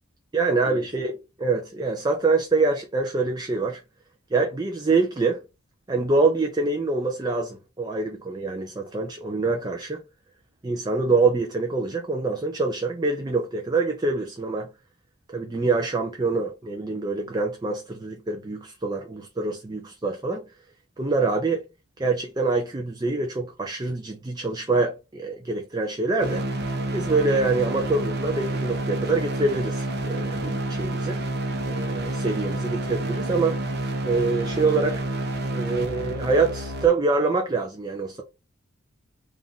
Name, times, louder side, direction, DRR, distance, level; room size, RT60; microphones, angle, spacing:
voice 1, 0.3-3.8 4.3-5.4 5.9-10.0 10.6-14.7 15.3-20.4 21.0-21.6 22.0-26.4 26.9-31.2 31.7-33.6 34.0-35.0 35.5-38.2, right 3 dB, 20° right, 0.5 m, -25 dB
sound 1, 26.2-36.9, right 1 dB, 55° right, 0.8 m, -29 dB
3.6 x 2.5 x 3.9 m
head